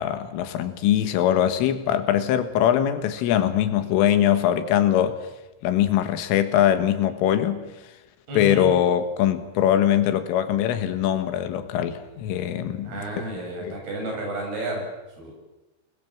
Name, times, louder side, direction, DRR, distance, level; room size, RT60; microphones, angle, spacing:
voice 1, 0.0-5.2 5.6-7.6 8.4-12.9 13.7-13.8, left 10 dB, 90° left, 4.1 m, -22 dB
voice 2, 8.3-8.7 12.8-15.3, right 1 dB, 50° right, 9.7 m, -31 dB
28.0 x 20.5 x 7.6 m
omnidirectional pair, 5.6 m